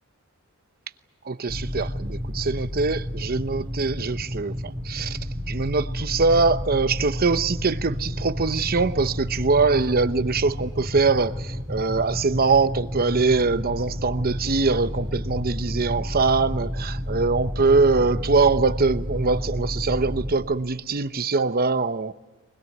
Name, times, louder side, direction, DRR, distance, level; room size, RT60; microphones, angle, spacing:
voice 1, 1.3-5.2 5.5-22.1, right 4 dB, 45° right, 0.9 m, -23 dB
sound 1, 1.5-20.3, equal, 10° right, 2.1 m, -31 dB
24.5 x 20.5 x 9.2 m
head